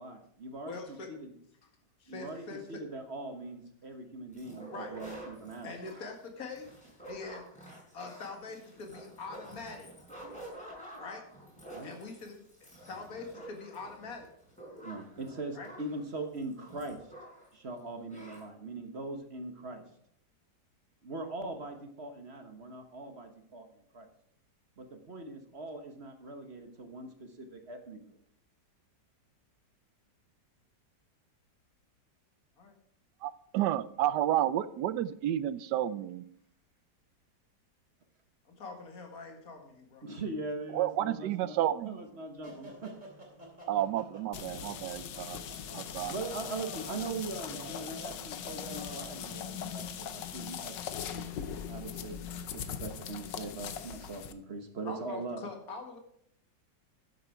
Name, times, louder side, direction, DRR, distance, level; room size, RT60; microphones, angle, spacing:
voice 1, 0.0-1.3 2.1-5.7 11.7-11.9 14.8-17.0 17.5-19.8 21.0-24.1 24.8-28.2 40.0-41.6 41.8-42.9 46.1-50.7 51.1-52.2 52.5-55.4, right 2 dB, 40° right, 5 dB, 1.3 m, -41 dB
voice 2, 0.6-1.1 2.0-2.8 4.7-4.9 5.6-6.8 7.0-7.4 7.9-9.9 11.0-11.2 11.8-12.4 12.6-14.3 15.5-15.7 32.6-32.7 38.5-40.0 54.8-56.0, left 4 dB, 55° left, 3 dB, 2.3 m, -43 dB
sound 1, 4.3-17.5 17.8-17.9 18.1-18.4, right 1 dB, 5° left, 5.1 m, -49 dB
voice 3, 33.2-36.2 40.7-42.0 43.7-45.4 45.7-46.1, right 12 dB, 75° right, 15 dB, 1.2 m, -31 dB
sound 2, 42.4-49.2, right 1 dB, 25° right, 3.3 m, -49 dB
sound 3, 44.3-54.3, left 9 dB, 80° left, 1.5 m, -40 dB
12.5 x 8.0 x 4.7 m, 0.69 s
omnidirectional pair, 1.9 m